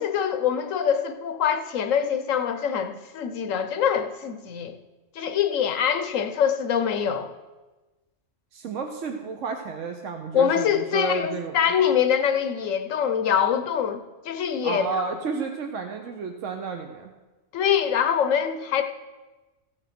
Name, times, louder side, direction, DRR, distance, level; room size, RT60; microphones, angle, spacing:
voice 1, 0.0-4.7 5.2-7.3 10.3-15.1 17.5-18.8, left 8 dB, 85° left, 8 dB, 1.2 m, -24 dB
voice 2, 8.5-11.7 14.6-17.1, right 4 dB, 75° right, 4 dB, 1.2 m, -31 dB
15.0 x 6.5 x 5.9 m, 1.2 s
omnidirectional pair, 1.3 m